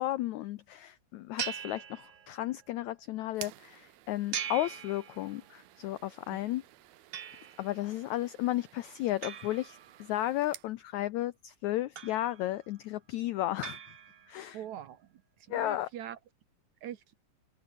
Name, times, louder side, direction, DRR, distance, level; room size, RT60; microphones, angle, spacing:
voice 1, 0.0-6.6 7.6-13.8 14.3-14.6 15.5-15.9, left 15 dB, 85° left, 1.6 m, -34 dB
sound 1, 1.4-2.6 4.3-5.6 7.1-7.8 9.2-10.4 12.0-12.7 13.6-14.5, right 9 dB, 50° right, 2.1 m, -41 dB
sound 2, 3.3-10.7, right 15 dB, 85° right, 3.0 m, -53 dB
voice 2, 14.5-15.1 15.5-16.2 16.8-17.1, right 11 dB, 65° right, 2.1 m, -42 dB
open air
omnidirectional pair, 4.2 m